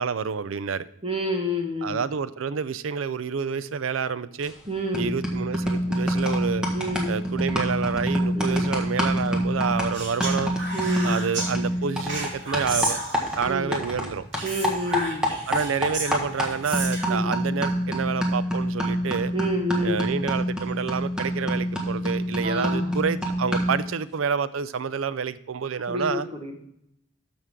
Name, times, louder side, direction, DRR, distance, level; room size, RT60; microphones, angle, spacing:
voice 1, 0.0-0.9 1.8-4.5 4.9-6.7 7.1-10.5 11.0-14.3 15.5-19.3 19.8-26.3, right 6 dB, 80° right, 16 dB, 0.5 m, -28 dB
voice 2, 1.0-2.0 4.7-5.1 6.7-7.1 8.3-8.6 10.7-11.2 13.4-13.7 14.4-15.2 17.1-17.3 19.3-20.0 22.4-22.9 25.9-26.1 26.4-26.5, equal, 25° right, 3 dB, 1.3 m, -29 dB
sound 1, 4.4-4.7 4.9-14.1 14.3-23.8, equal, 5° right, 1.4 m, -26 dB
Speech, 9.9-11.5 12.1-13.5 14.3-17.2, right 2 dB, 60° right, 2.6 m, -33 dB
13.0 x 6.1 x 3.6 m, 0.76 s
head